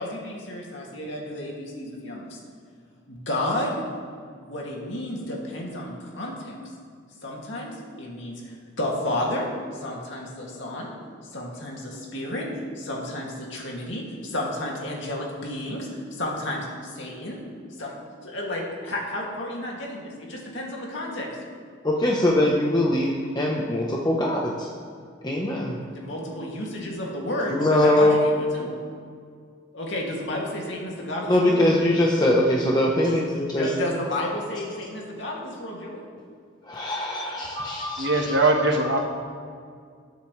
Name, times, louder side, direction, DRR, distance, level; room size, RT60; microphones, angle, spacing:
voice 1, 0.0-2.4 3.1-3.7 4.4-6.5 7.2-7.7 8.0-9.5 9.7-10.9 11.3-12.5 12.7-17.4 17.8-17.9 18.2-21.3 25.9-28.7 29.7-31.6 33.6-36.0, left 1 dB, 60° left, -2 dB, 2.5 m, -31 dB
voice 2, 21.8-24.7 25.2-25.8 27.5-28.3 31.3-33.7 36.6-38.3, left 1 dB, 20° left, -2 dB, 1.0 m, -22 dB
voice 3, 37.6-39.0, right 2 dB, 60° right, 2 dB, 1.5 m, -22 dB
19.5 x 8.1 x 3.3 m, 2.2 s
head